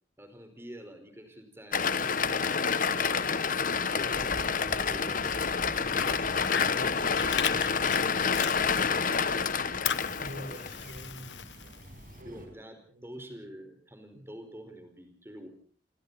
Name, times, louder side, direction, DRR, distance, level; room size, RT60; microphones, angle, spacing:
voice 1, 0.2-5.4 5.7-6.4 6.7-9.6 12.2-15.5, equal, 15° right, 7 dB, 4.8 m, -48 dB
sound 1, 1.7-10.8, left 6 dB, 50° left, 1.1 m, -28 dB
sound 2, 3.9-12.5, equal, 50° right, 5.7 m, -47 dB
Fire, 5.3-9.0 9.3-12.1, left 8 dB, 85° left, 1.3 m, -37 dB
voice 2, 10.2-12.4 12.9-13.1 14.1-14.2, right 1 dB, 70° right, 6 dB, 6.2 m, -46 dB
28.0 x 25.0 x 4.2 m, 0.44 s
head